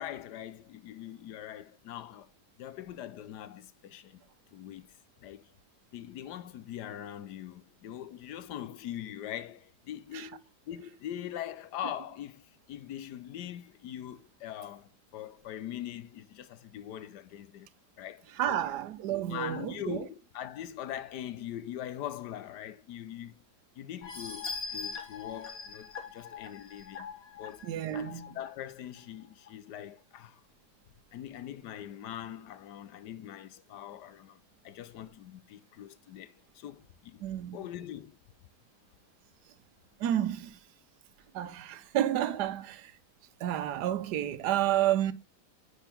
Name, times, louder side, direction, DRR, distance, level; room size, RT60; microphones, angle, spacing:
voice 1, 0.0-2.3 2.6-4.2 4.5-4.9 5.2-5.5 5.9-17.7 18.0-18.6 19.3-23.4 23.8-27.1 27.4-27.7 27.9-30.4 31.1-37.2 37.5-38.2, left 11 dB, 90° left, 1.4 m, -42 dB
voice 2, 18.4-20.0 27.6-28.4 37.2-37.6 40.0-40.6 41.3-42.9 43.4-45.1, right 11 dB, 80° right, 1.3 m, -30 dB
sound 1, 24.0-28.5 29.0-29.1 29.5-29.6, left 5 dB, 60° left, 2.3 m, -41 dB
10.0 x 5.0 x 3.5 m
omnidirectional pair, 1.7 m